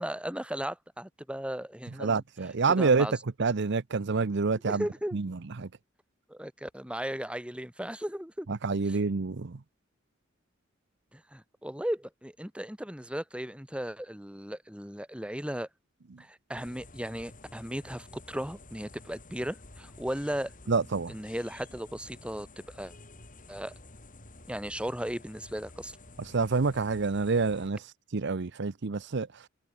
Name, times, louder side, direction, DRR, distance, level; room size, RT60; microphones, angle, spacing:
voice 1, 0.0-2.2 2.8-3.1 4.7-5.2 6.3-8.5 8.9-9.0 11.1-15.7 16.2-20.8 21.1-22.9 23.5-23.7 24.5-26.0, equal, 5° right, 3.2 m, -36 dB
voice 2, 2.0-3.1 3.4-4.8 5.1-5.3 5.6-5.7 8.5-9.6 20.7-21.1 26.3-29.5, right 4 dB, 60° right, 0.7 m, -27 dB
sound 1, 16.6-27.7, left 2 dB, 45° left, 5.7 m, -51 dB
head